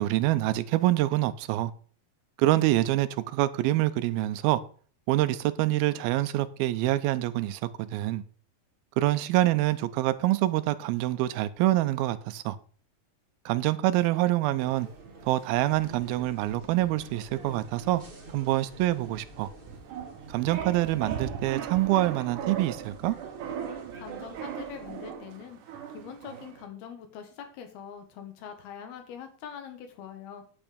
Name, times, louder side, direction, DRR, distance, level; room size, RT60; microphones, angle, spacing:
voice 1, 0.0-1.7 2.4-4.6 5.1-8.2 9.0-12.6 13.5-14.9 15.2-18.0 18.3-19.5 20.3-23.2, right 15 dB, 80° right, 2.5 m, -26 dB
sound 1, 14.4-26.7, right 8 dB, 65° right, 2.4 m, -40 dB
sound 2, 14.6-25.1, right 1 dB, 35° right, 0.8 m, -49 dB
voice 2, 23.9-25.6 25.9-30.4, left 8 dB, 85° left, 3.5 m, -43 dB
9.6 x 8.8 x 5.1 m
omnidirectional pair, 4.3 m